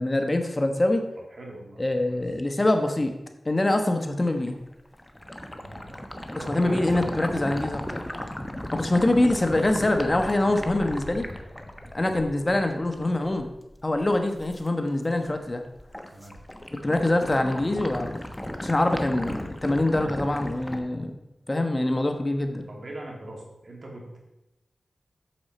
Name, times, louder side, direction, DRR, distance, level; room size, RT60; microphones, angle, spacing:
voice 1, 0.0-1.0 1.8-3.1 3.4-4.6 6.5-8.0 8.7-11.3 11.9-13.5 13.8-15.6 16.8-18.2 18.6-21.1 21.5-22.6, left 1 dB, 30° left, 5 dB, 1.2 m, -24 dB
voice 2, 1.2-1.8 2.1-2.2 5.6-5.8 6.3-7.3 16.1-16.4 22.7-24.2, right 1 dB, 65° right, -1 dB, 2.7 m, -41 dB
sound 1, 4.3-14.7 15.0-15.5 15.8-20.8, left 1 dB, 10° left, 1.1 m, -36 dB
8.6 x 7.2 x 4.3 m, 0.92 s
cardioid pair, 45°, 0 cm